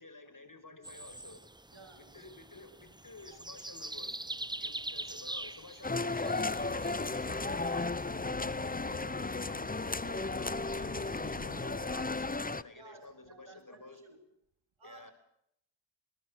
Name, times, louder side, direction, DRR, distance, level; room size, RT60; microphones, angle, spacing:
voice 1, 0.0-1.4 2.0-4.2 4.6-8.0 8.3-14.0 14.8-15.1, left 3 dB, 45° left, 5.7 m, -52 dB
sound 1, 0.8-8.1, right 1 dB, 10° right, 0.8 m, -44 dB
voice 2, 1.7-2.1 12.7-14.2 14.8-15.1, right 4 dB, 85° right, 4.1 m, -55 dB
sound 2, 5.8-12.6, left 3 dB, 20° left, 0.9 m, -34 dB
sound 3, 6.4-12.3, left 4 dB, 85° left, 6.7 m, -47 dB
25.0 x 21.0 x 6.6 m
cardioid pair, 50°, 46 cm